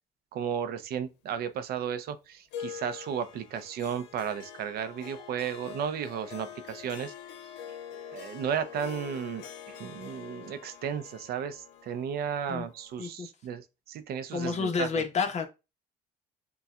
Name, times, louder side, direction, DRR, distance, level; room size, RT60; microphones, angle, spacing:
voice 1, 0.3-7.1 7.4-7.5 8.1-15.0, right 8 dB, 65° right, 0.6 m, -34 dB
Harp, 2.5-13.1, left 9 dB, 90° left, 0.7 m, -45 dB
voice 2, 14.3-15.5, left 5 dB, 40° left, 1.0 m, -29 dB
6.9 x 2.3 x 2.4 m
cardioid pair, 110°, 17 cm